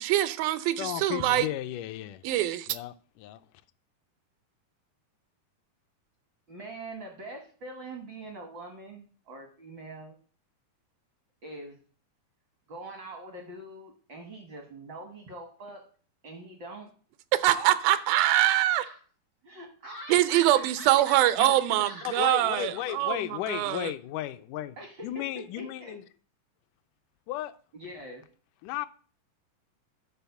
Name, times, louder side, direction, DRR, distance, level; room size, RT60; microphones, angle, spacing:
voice 1, 0.0-1.5 2.2-2.7 17.4-18.9 20.1-23.9, right 14 dB, 85° right, 2.5 m, -24 dB
voice 2, 0.8-2.2 2.7-3.4 21.4-21.5 22.0-24.8 25.0-26.0 27.3-27.6 28.6-28.9, left 13 dB, 80° left, 1.9 m, -34 dB
voice 3, 6.5-10.2 11.4-11.8 12.7-15.8 16.2-16.9 17.5-19.0 19.4-22.3 22.6-22.9 24.8-26.0 27.7-28.2, right 2 dB, 70° right, 1.0 m, -44 dB
11.0 x 4.2 x 6.9 m
omnidirectional pair, 4.0 m